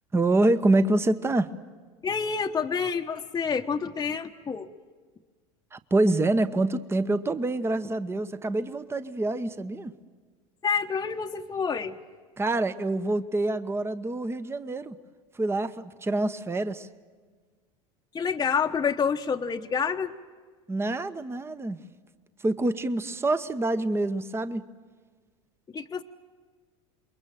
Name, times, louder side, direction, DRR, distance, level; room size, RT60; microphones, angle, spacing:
voice 1, 0.1-1.5 5.7-9.9 12.4-15.0 15.3-16.9 20.7-21.8 22.4-24.7, right 2 dB, 15° right, 13 dB, 0.9 m, -26 dB
voice 2, 2.0-4.7 10.6-12.0 18.1-20.1 25.7-26.0, left 6 dB, 20° left, 3 dB, 1.0 m, -28 dB
27.5 x 22.5 x 7.6 m, 1.5 s
hypercardioid pair, 85°, 17 cm